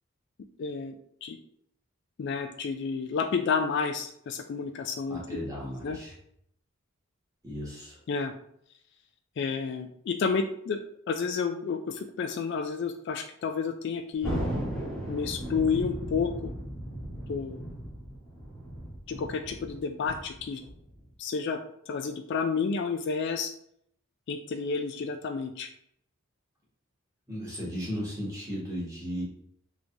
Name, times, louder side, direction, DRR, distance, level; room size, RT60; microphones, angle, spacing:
voice 1, 0.6-1.0 1.2-1.4 2.2-5.4 5.8-6.0 8.1-8.3 9.4-10.8 11.1-14.4 15.1-16.5 17.3-17.6 19.1-20.6 21.2-21.6 21.9-23.5 24.3-25.7, left 5 dB, 55° left, 6 dB, 0.3 m, -30 dB
voice 2, 5.1-6.1 7.4-8.0 27.3-29.2, equal, 15° right, -6 dB, 1.4 m, -35 dB
Thunder, 14.2-21.1, equal, ahead, 1.1 m, -36 dB
3.6 x 3.1 x 2.6 m, 0.69 s
head